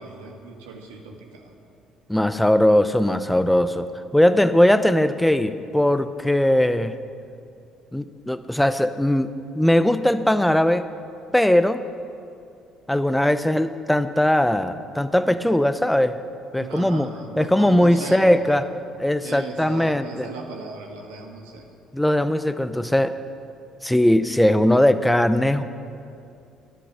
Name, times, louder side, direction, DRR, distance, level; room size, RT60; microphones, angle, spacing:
voice 1, 0.0-1.5 16.5-18.6 19.2-21.7, right 4 dB, 75° right, 2 dB, 1.4 m, -37 dB
voice 2, 2.1-7.0 7.9-9.3 9.5-10.9 11.3-11.8 12.9-16.2 16.5-17.1 17.4-18.6 19.0-20.3 21.9-23.2 23.8-25.6, left 1 dB, 5° left, 12 dB, 0.7 m, -19 dB
12.0 x 11.0 x 5.7 m, 2.5 s
hypercardioid pair, 55°, 0 cm